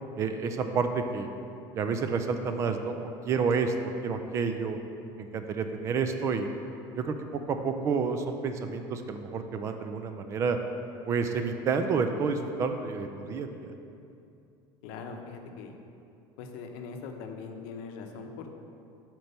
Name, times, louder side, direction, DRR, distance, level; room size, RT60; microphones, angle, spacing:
voice 1, 0.2-1.3 1.7-3.7 4.0-4.8 5.2-6.5 6.9-10.6 11.0-13.7, right 5 dB, 30° right, 7 dB, 0.3 m, -29 dB
voice 2, 14.8-15.7 16.4-18.6, left 5 dB, 75° left, 4 dB, 0.7 m, -41 dB
6.6 x 4.4 x 5.4 m, 2.6 s
cardioid pair, 170°, 10 cm